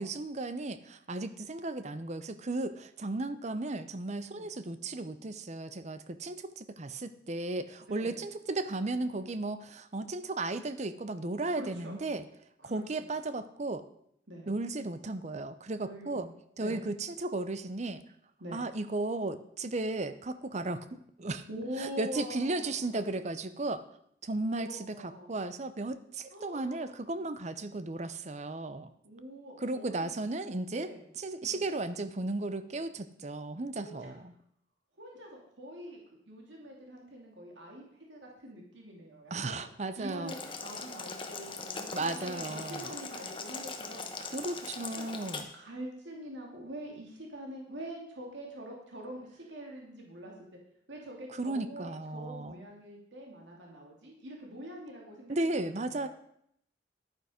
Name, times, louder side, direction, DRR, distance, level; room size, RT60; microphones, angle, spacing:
voice 1, 0.0-12.2 12.6-13.9 14.5-16.3 16.6-18.0 18.5-21.4 21.8-23.8 24.2-25.0 25.3-28.9 29.6-34.3 39.3-40.3 41.9-42.9 44.3-45.5 51.4-52.7 55.3-56.1, right 2 dB, 40° right, 12 dB, 0.7 m, -35 dB
voice 2, 7.9-8.2 11.5-11.9 12.6-13.1 14.3-14.5 15.8-16.3 16.6-16.8 18.4-18.6 21.5-23.0 24.3-25.3 26.3-27.0 29.0-30.2 30.7-31.1 31.4-31.6 33.8-34.1 35.0-36.0 36.2-37.8 38.1-39.6 40.0-44.1 44.7-45.1 45.5-50.3 50.9-55.3 55.8-56.1, equal, 80° right, -1 dB, 2.7 m, -45 dB
Boiling, 40.3-45.4, left 4 dB, 30° left, 1.1 m, -40 dB
11.0 x 9.4 x 5.1 m, 0.73 s
head